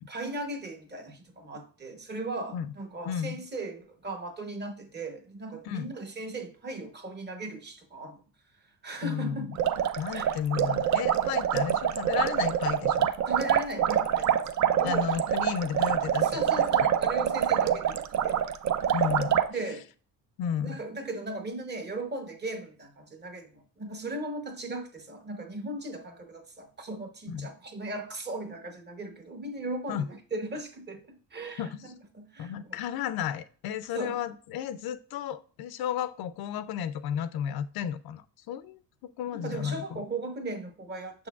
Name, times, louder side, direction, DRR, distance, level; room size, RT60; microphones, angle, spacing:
voice 1, 0.1-8.2 8.8-9.5 10.1-10.2 12.1-12.3 13.3-15.1 16.2-18.5 19.5-19.9 20.6-31.7 32.1-32.7 33.9-34.2 39.3-41.3, right 2 dB, 25° right, 0.9 m, -37 dB
voice 2, 3.1-3.4 5.6-5.9 9.0-9.6 10.0-13.1 14.8-16.9 18.9-19.4 20.4-20.8 27.3-27.5 29.9-30.1 31.6-31.9 32.4-38.8 39.2-40.0, left 9 dB, 70° left, 0.5 m, -33 dB
sound 1, 9.5-19.5, right 9 dB, 50° right, 0.5 m, -26 dB
6.6 x 6.1 x 2.4 m
cardioid pair, 135°, 38 cm